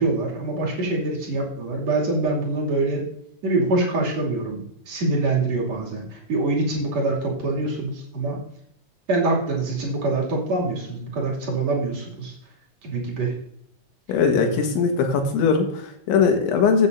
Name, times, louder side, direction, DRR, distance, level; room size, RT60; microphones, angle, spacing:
voice 1, 0.0-3.0 3.4-8.4 9.1-12.3 12.8-13.3, right 2 dB, 40° right, -3 dB, 3.2 m, -24 dB
voice 2, 14.1-16.9, left 5 dB, 80° left, 4 dB, 3.7 m, -20 dB
15.0 x 8.6 x 2.7 m, 0.70 s
omnidirectional pair, 5.4 m